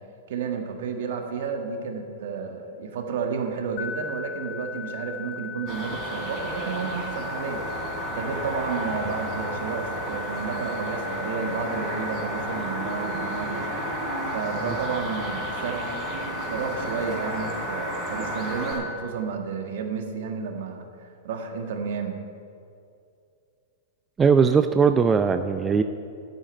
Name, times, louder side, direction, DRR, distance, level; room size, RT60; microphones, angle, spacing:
voice 1, 0.3-7.6 8.1-13.7 14.3-15.8 16.5-20.9 21.2-22.2, right 5 dB, 65° right, 4 dB, 1.6 m, -31 dB
sound 1, 3.8-18.7, left 7 dB, 45° left, 1.5 m, -38 dB
sound 2, 5.7-18.8, right 2 dB, 35° right, 3.4 m, -33 dB
sound 3, 12.3-14.6 15.2-17.4, right 2 dB, 80° right, 3.1 m, -41 dB
voice 2, 24.2-25.8, right 5 dB, 20° right, 8 dB, 0.5 m, -19 dB
9.1 x 8.8 x 8.8 m, 2.5 s
hypercardioid pair, 110°, 0 cm